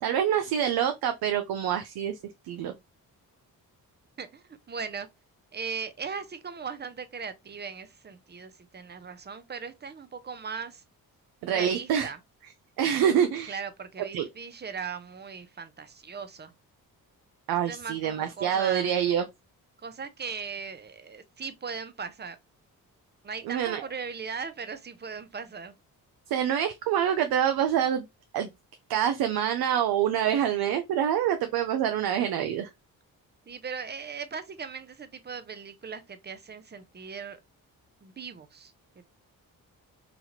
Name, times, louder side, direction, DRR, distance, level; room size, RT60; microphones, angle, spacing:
voice 1, 0.0-2.2 2.5-2.7 11.4-12.1 12.8-13.6 14.1-14.3 17.5-19.2 23.4-23.8 26.3-28.1 28.3-28.5 28.9-32.7, right 9 dB, 75° right, 0.5 m, -26 dB
voice 2, 4.2-5.1 5.5-10.8 11.5-12.2 13.5-16.5 17.7-18.9 19.8-22.4 23.2-25.7 33.5-37.4 38.0-38.7, right 6 dB, 30° right, 0.6 m, -38 dB
2.9 x 2.3 x 2.8 m
cardioid pair, 65°, 37 cm